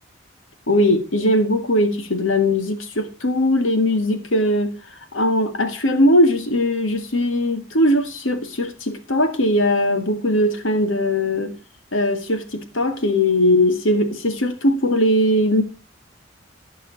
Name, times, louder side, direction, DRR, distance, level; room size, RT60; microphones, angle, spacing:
voice 1, 0.7-4.7 5.1-11.5 11.9-15.6, left 1 dB, 75° left, 1.9 m, -19 dB
16.0 x 6.2 x 4.0 m
head